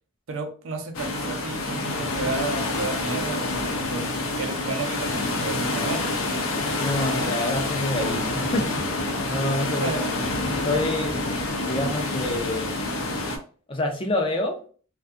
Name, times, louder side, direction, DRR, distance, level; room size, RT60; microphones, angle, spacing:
voice 1, 0.3-4.0 4.4-6.0 9.8-10.0, right 3 dB, 70° right, 0.5 m, -32 dB
sound 1, 0.9-13.4, left 2 dB, 90° left, 0.5 m, -27 dB
sound 2, 6.7-7.8 8.4-9.6 10.2-11.3 12.0-12.6, right 1 dB, 30° right, 0.6 m, -42 dB
voice 2, 6.8-10.0 10.6-11.2 11.7-12.8 13.7-14.6, left 1 dB, 25° left, 0.4 m, -27 dB
2.6 x 2.3 x 2.4 m
head